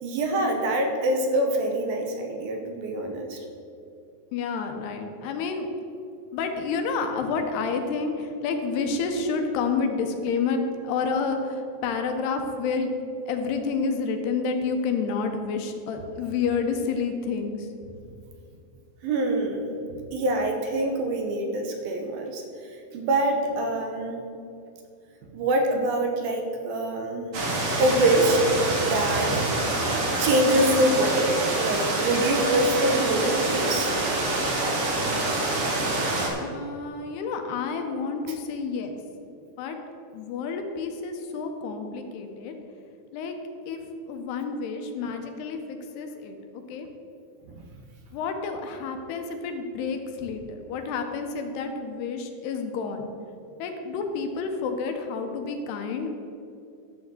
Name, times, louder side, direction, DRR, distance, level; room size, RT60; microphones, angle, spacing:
voice 1, 0.0-3.4 19.0-19.6 20.1-22.4 22.7-24.3 25.3-27.3 27.8-28.4 28.7-29.5 30.2-33.9 38.3-38.4 47.6-47.7, right 1 dB, 75° right, 3 dB, 2.6 m, -25 dB
voice 2, 4.3-5.7 6.3-12.9 13.3-17.7 36.4-38.9 39.6-39.8 40.1-42.5 43.1-43.3 43.7-43.8 44.1-46.9 48.1-53.1 53.6-56.1, left 5 dB, 80° left, 5 dB, 2.9 m, -29 dB
sound 1, 27.3-36.3, right 2 dB, 55° right, 1.7 m, -26 dB
11.5 x 4.8 x 7.7 m, 2.6 s
omnidirectional pair, 4.7 m